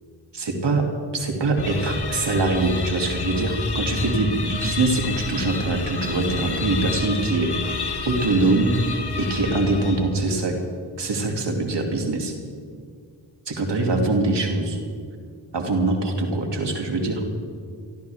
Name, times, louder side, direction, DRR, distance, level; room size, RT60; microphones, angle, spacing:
voice 1, 0.3-0.9 1.1-8.7 9.2-10.5 11.0-12.3 13.5-14.8 15.5-17.2, right 2 dB, 65° right, 2 dB, 2.5 m, -23 dB
sound 1, 1.6-10.3, left 5 dB, 60° left, 1.7 m, -30 dB
25.0 x 13.5 x 3.5 m, 2.2 s
cardioid pair, 45°, 45 cm